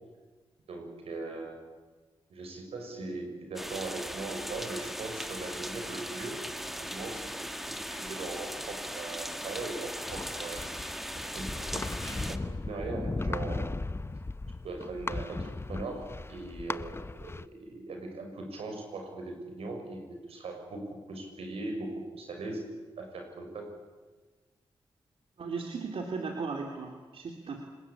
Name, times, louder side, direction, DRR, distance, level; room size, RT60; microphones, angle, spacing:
voice 1, 0.7-1.6 2.3-6.4 6.8-10.6 11.3-13.7 14.6-22.7 23.0-23.7, right 2 dB, 90° right, 3 dB, 6.5 m, -40 dB
sound 1, 3.6-12.4, equal, ahead, 1.8 m, -39 dB
sound 2, 10.1-17.4, left 3 dB, 25° left, 0.9 m, -37 dB
voice 2, 25.4-27.6, right 4 dB, 70° right, 2 dB, 3.1 m, -36 dB
29.5 x 20.5 x 8.6 m, 1.3 s
cardioid pair, 70°, 10 cm